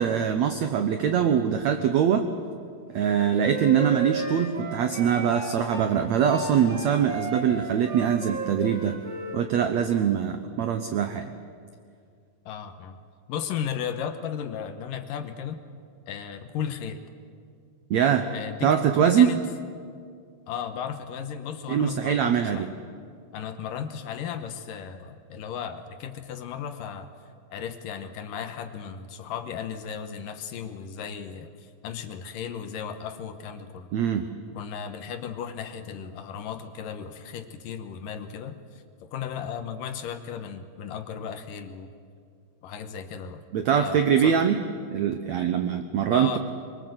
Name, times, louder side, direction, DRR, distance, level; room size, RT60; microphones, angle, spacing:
voice 1, 0.0-2.3 2.9-8.9 9.3-11.3 17.9-18.3 18.6-19.4 21.7-22.7 33.9-34.3 43.5-44.6 44.9-46.4, right 8 dB, 80° right, 8 dB, 1.6 m, -23 dB
Wind instrument woodwind instrument, 3.1-5.9 6.3-9.4, right 1 dB, 20° right, 2.7 m, -35 dB
voice 2, 12.5-13.0 13.3-15.6 16.1-17.0 18.3-19.4 20.5-22.7 23.3-27.1 27.5-33.9 34.6-41.9 42.6-43.4 43.7-44.4 46.1-46.4, left 8 dB, 70° left, 8 dB, 2.5 m, -35 dB
24.5 x 23.0 x 8.0 m, 2.2 s
omnidirectional pair, 4.4 m